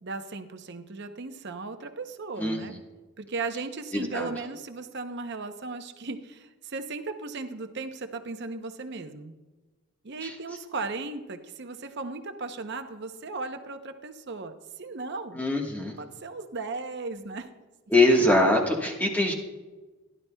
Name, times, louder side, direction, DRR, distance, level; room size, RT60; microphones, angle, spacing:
voice 1, 0.0-2.7 3.2-9.3 10.0-15.4 16.0-17.5, right 3 dB, 55° right, 8 dB, 0.7 m, -36 dB
voice 2, 2.4-2.8 3.9-4.4 10.2-10.3 15.3-16.0 17.9-19.3, left 1 dB, 10° left, 0 dB, 1.3 m, -23 dB
16.0 x 11.0 x 2.3 m, 1.2 s
head